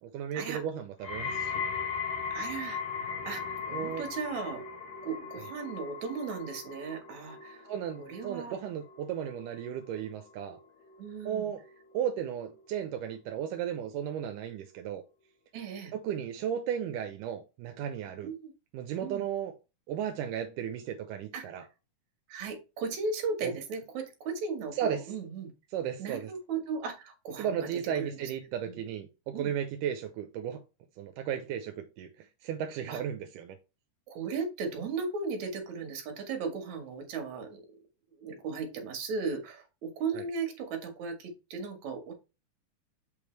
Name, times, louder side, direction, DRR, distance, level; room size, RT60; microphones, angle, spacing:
voice 1, 0.0-1.6 3.7-4.0 7.7-10.6 11.2-11.6 11.9-15.0 15.9-18.3 18.7-19.5 19.9-21.6 23.4-23.5 24.7-25.1 25.7-26.3 27.4-30.6 31.0-33.6 40.1-40.2, right 9 dB, 85° right, 2.3 m, -35 dB
sound 1, 1.0-12.2 12.5-13.0 13.7-13.8, left 6 dB, 85° left, 3.6 m, -39 dB
voice 2, 2.3-4.6 5.0-7.6 8.0-8.5 11.0-11.5 15.5-15.9 18.2-18.5 19.0-19.2 21.3-21.4 22.3-25.5 26.0-27.7 28.0-28.3 28.7-28.8 29.3-29.5 32.9-33.0 34.1-37.6 38.2-42.1, right 4 dB, 65° right, 2.9 m, -36 dB
6.9 x 5.2 x 3.2 m
omnidirectional pair, 3.7 m